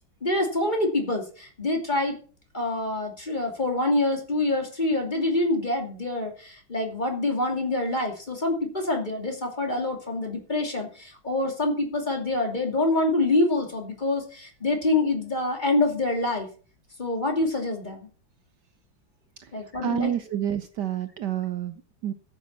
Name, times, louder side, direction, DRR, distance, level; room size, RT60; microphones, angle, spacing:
voice 1, 0.2-2.2 2.5-16.5 17.0-18.1 19.5-20.1, left 2 dB, 20° left, 2 dB, 2.7 m, -26 dB
voice 2, 19.8-22.1, right 10 dB, 65° right, 11 dB, 1.3 m, -29 dB
14.0 x 7.3 x 6.1 m, 0.40 s
omnidirectional pair, 2.2 m